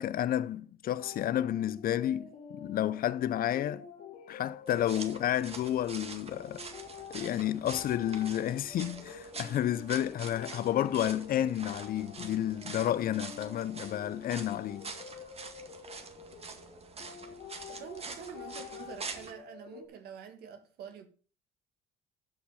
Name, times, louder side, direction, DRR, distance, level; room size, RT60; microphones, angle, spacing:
voice 1, 0.0-3.9 4.3-6.6 7.1-14.9, left 11 dB, 60° left, 0.7 m, -31 dB
sound 1, 0.8-19.9, left 6 dB, 85° left, 3.1 m, -48 dB
sound 2, 4.7-19.3, right 4 dB, 35° right, 2.0 m, -46 dB
voice 2, 17.7-21.1, right 7 dB, 70° right, 2.2 m, -46 dB
12.5 x 6.0 x 5.7 m
supercardioid pair, 65°, 17 cm